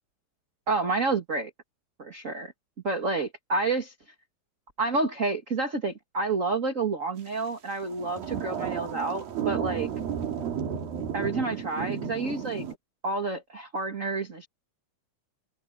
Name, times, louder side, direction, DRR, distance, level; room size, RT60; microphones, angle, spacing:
voice 1, 0.7-1.5 2.0-2.5 2.8-3.9 4.8-9.9 11.1-12.6 13.0-14.5, right 3 dB, 30° right, 1.6 m, -29 dB
sound 1, 7.8-12.7, right 8 dB, 70° right, 4.4 m, -33 dB
open air
omnidirectional pair, 4.4 m